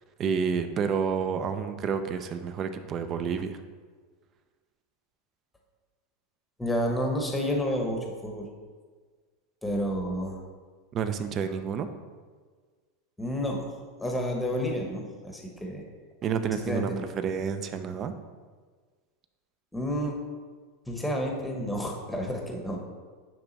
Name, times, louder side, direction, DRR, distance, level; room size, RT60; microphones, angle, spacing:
voice 1, 0.2-3.6 10.9-11.9 16.2-16.9 17.2-18.1, right 6 dB, 30° right, 9 dB, 0.5 m, -29 dB
voice 2, 6.6-8.5 9.6-10.4 13.2-13.7 14.0-15.8 16.6-17.1 19.7-20.1 20.9-22.8, equal, 5° left, 1 dB, 1.0 m, -30 dB
8.9 x 3.6 x 4.0 m, 1.5 s
supercardioid pair, 145°, 0 cm